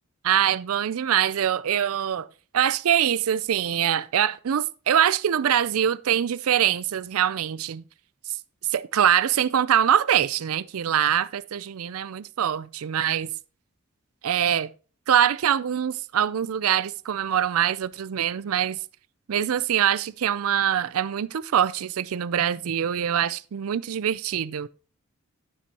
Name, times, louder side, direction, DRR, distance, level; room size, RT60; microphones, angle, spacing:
voice 1, 0.2-2.3 2.5-7.8 8.7-13.3 14.2-14.7 15.1-18.8 19.3-24.7, right 9 dB, 75° right, 0.4 m, -24 dB
11.5 x 9.8 x 2.9 m
head